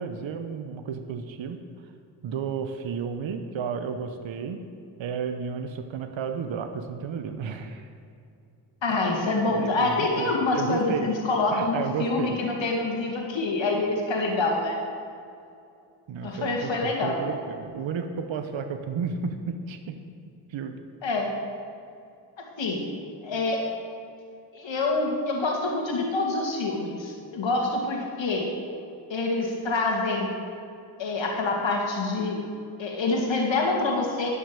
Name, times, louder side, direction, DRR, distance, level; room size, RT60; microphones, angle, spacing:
voice 1, 0.0-1.6 2.2-4.6 5.0-7.9 9.3-11.1 11.5-12.4 16.1-20.0 20.5-20.7 21.1-21.3, right 6 dB, 65° right, 7 dB, 0.9 m, -32 dB
voice 2, 8.8-14.8 16.2-17.2 21.0-21.3 22.6-22.8 23.2-23.6 24.5-28.5 29.1-30.3 31.0-32.4 32.8-34.3, left 3 dB, 65° left, 0 dB, 2.2 m, -26 dB
11.0 x 6.2 x 6.9 m, 2.5 s
supercardioid pair, 50°, 49 cm